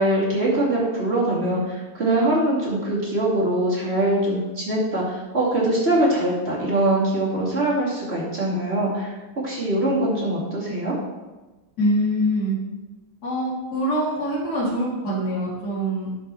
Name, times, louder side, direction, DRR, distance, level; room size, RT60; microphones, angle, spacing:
voice 1, 0.0-9.2 9.4-11.0, right 1 dB, 30° right, -6 dB, 2.8 m, -22 dB
voice 2, 11.8-12.6 13.2-16.1, equal, 45° left, -8 dB, 3.5 m, -24 dB
12.0 x 5.3 x 4.5 m, 1.2 s
omnidirectional pair, 2.2 m